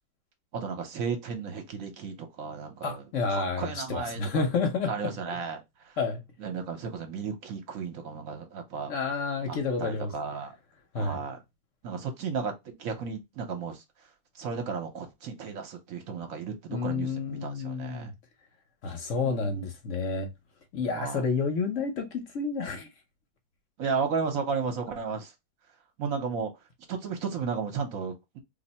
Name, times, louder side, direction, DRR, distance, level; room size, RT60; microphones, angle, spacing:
voice 1, 0.5-3.0 3.3-4.4 4.9-6.0 6.4-8.9 9.5-10.5 11.0-11.4 11.8-13.8 14.4-18.1 19.2-19.6 20.9-21.2 23.8-25.3 26.0-26.5 26.9-28.4, right 5 dB, 65° right, 1.1 m, -34 dB
voice 2, 2.8-5.4 6.0-6.2 8.9-10.1 10.9-11.2 16.7-18.1 18.8-20.3 20.7-22.9, left 4 dB, 55° left, 1.1 m, -30 dB
2.7 x 2.6 x 4.1 m
omnidirectional pair, 1.7 m